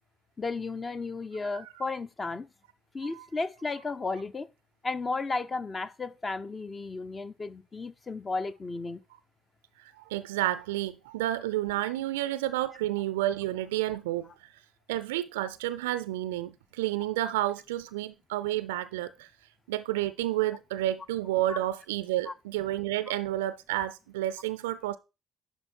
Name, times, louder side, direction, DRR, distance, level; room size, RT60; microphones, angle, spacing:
voice 1, 0.4-2.5 2.9-4.5 4.8-9.0 21.5-21.6 22.3-22.4, left 3 dB, 30° left, 0.8 m, -34 dB
voice 2, 9.8-14.5 14.9-19.3 19.7-25.0, right 14 dB, 75° right, 0.4 m, -30 dB
11.0 x 4.1 x 4.5 m
figure-of-eight pair, 45°, 0 cm